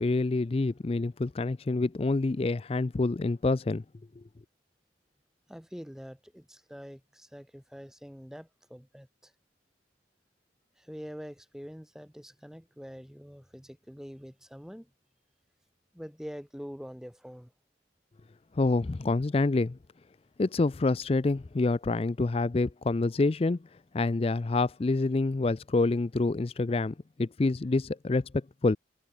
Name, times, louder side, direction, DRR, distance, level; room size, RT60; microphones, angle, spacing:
voice 1, 0.0-3.8 18.5-19.8 20.4-23.6 23.9-28.8, left 3 dB, 30° left, 0.4 m, -27 dB
voice 2, 5.5-9.3 10.8-14.9 15.9-17.5, equal, 5° right, 2.6 m, -45 dB
head